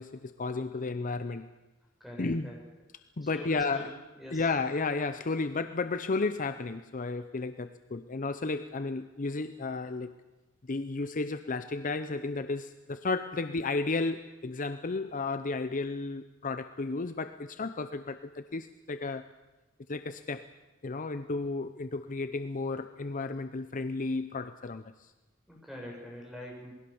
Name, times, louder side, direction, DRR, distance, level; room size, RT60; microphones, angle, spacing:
voice 1, 0.0-1.5 2.2-2.6 3.2-3.9 4.3-10.1 10.7-19.3 19.9-20.5 20.8-25.1, left 3 dB, 40° left, 11 dB, 0.7 m, -33 dB
voice 2, 2.0-2.6 3.2-4.4 25.5-26.7, equal, ahead, -1 dB, 7.6 m, -44 dB
27.5 x 20.5 x 7.1 m, 1.1 s
head